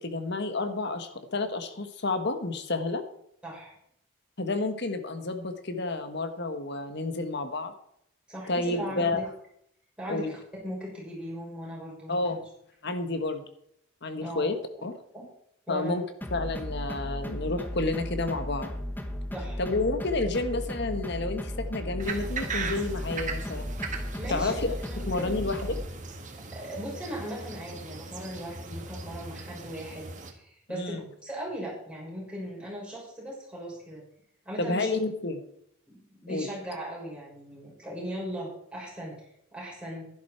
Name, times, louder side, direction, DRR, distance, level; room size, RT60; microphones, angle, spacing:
voice 1, 0.0-3.0 4.4-7.7 8.5-9.2 10.1-10.3 12.1-12.4 12.8-13.4 14.0-14.5 14.8-14.9 15.7-16.0 16.3-18.7 19.6-23.7 24.3-24.5 25.1-25.7 30.7-31.0 34.6-35.4 36.3-36.5, left 2 dB, 55° left, 7 dB, 1.5 m, -30 dB
voice 2, 3.4-3.7 8.3-9.2 10.0-12.4 14.2-14.4 15.1-15.2 15.7-16.0 19.3-19.6 24.2-25.3 26.5-34.0 34.4-34.9 35.9-40.1, equal, 5° right, -5 dB, 6.2 m, -38 dB
sound 1, 16.2-25.9, equal, 10° left, 1.1 m, -35 dB
sound 2, 22.0-30.3, right 4 dB, 40° right, 1.6 m, -39 dB
11.5 x 11.5 x 4.5 m, 0.72 s
head